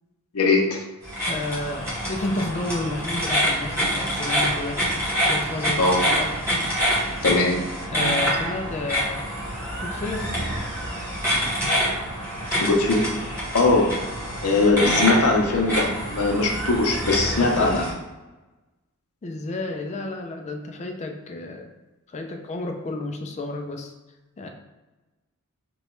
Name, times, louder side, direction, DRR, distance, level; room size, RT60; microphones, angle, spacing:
voice 1, 0.3-0.8 5.8-6.0 7.2-7.6 12.5-13.0 13.5-13.9 14.4-17.8, left 3 dB, 70° left, 2 dB, 0.6 m, -20 dB
sound 1, 1.0-17.9, equal, 10° right, 1.0 m, -26 dB
voice 2, 1.3-4.8 5.2-6.3 7.9-9.3 9.8-10.4 14.6-15.0 17.3-17.9 19.2-21.7 22.1-23.9 24.4-24.5, left 2 dB, 30° left, 4 dB, 0.3 m, -31 dB
3.0 x 2.3 x 3.0 m, 1.1 s
head